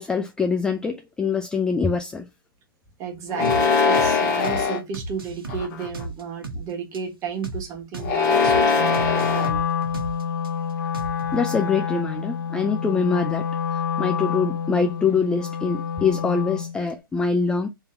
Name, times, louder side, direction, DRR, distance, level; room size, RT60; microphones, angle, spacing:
voice 1, 0.0-2.3 11.3-13.5 13.7-17.7, left 5 dB, 5° left, 0.3 m, -24 dB
voice 2, 3.0-9.7, right 6 dB, 25° right, 1.4 m, -33 dB
sound 1, 3.3-4.8 5.5-6.0 8.0-9.5, left 4 dB, 40° left, 1.3 m, -21 dB
sound 2, 3.4-3.6 3.9-4.1 4.4-4.6 4.9-6.6 6.9-7.0 7.4-7.6 7.9-8.1 8.4-8.6 8.9-10.5 10.9-11.4, right 2 dB, 75° right, 1.2 m, -34 dB
Wind instrument woodwind instrument, 8.7-16.8, left 7 dB, 65° left, 1.3 m, -28 dB
3.7 x 2.7 x 4.3 m
hypercardioid pair, 125°, 12 cm